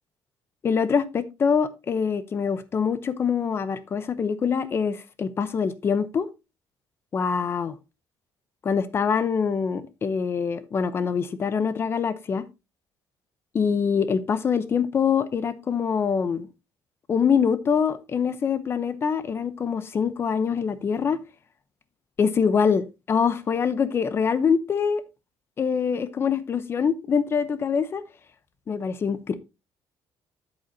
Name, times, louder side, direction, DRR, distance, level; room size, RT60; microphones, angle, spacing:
voice 1, 0.6-6.3 7.1-7.8 8.6-12.4 13.5-16.5 17.1-21.2 22.2-25.0 25.6-28.0 28.7-29.4, left 6 dB, 30° left, 0.7 m, -24 dB
8.7 x 7.9 x 2.7 m
cardioid pair, 175°, 9 cm